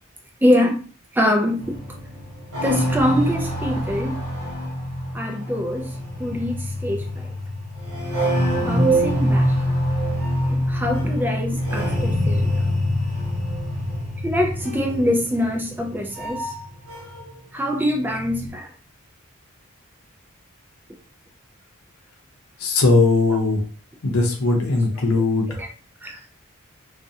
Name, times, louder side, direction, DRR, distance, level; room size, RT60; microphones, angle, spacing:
voice 1, 0.4-0.8 1.1-1.7 2.6-4.2 5.1-5.9 6.2-7.3 8.6-9.5 10.5-12.7 14.2-16.5 17.5-18.7 25.5-25.7 26.0-26.2, equal, 10° right, 2 dB, 0.3 m, -24 dB
sound 1, 1.6-17.4 17.7-18.5, equal, 70° right, 0.9 m, -25 dB
voice 2, 22.6-23.6 24.0-25.6, left 3 dB, 80° left, 1 dB, 0.6 m, -19 dB
2.4 x 2.0 x 2.7 m, 0.39 s
head